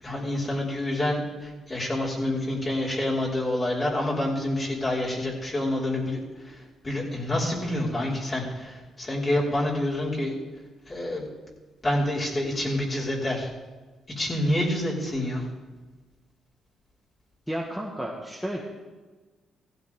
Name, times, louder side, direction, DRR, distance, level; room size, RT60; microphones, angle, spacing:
voice 1, 0.0-6.2 6.8-10.3 10.9-11.3 11.8-13.5 14.2-15.4, left 1 dB, 25° left, -5 dB, 5.3 m, -27 dB
voice 2, 17.5-18.6, equal, ahead, -2 dB, 1.8 m, -32 dB
16.5 x 15.5 x 3.8 m, 1.3 s
cardioid pair, 90°, 0 cm